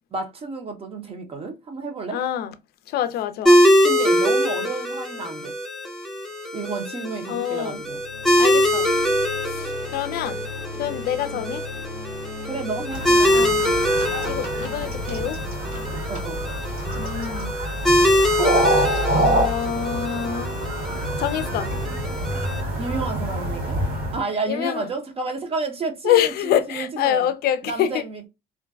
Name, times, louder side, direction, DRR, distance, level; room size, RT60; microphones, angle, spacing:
voice 1, 0.1-2.2 3.8-5.5 6.5-8.0 12.4-13.7 16.1-16.4 22.8-23.8 24.1-27.3 27.6-28.3, right 4 dB, 35° right, 0.7 m, -31 dB
voice 2, 2.1-2.5 2.9-3.6 7.3-7.8 8.4-8.9 9.5-10.4 10.8-11.6 13.3-13.6 14.2-15.4 16.9-17.5 19.1-20.5 21.2-21.7 24.5-24.9 26.0-28.0, left 11 dB, 65° left, 0.4 m, -26 dB
sound 1, 3.5-22.6, equal, ahead, 0.6 m, -23 dB
sound 2, 7.7-18.7, left 2 dB, 85° right, 1.0 m, -38 dB
sound 3, 12.9-24.2, right 1 dB, 60° right, 1.5 m, -26 dB
2.5 x 2.2 x 2.2 m
cardioid pair, 110°, 17 cm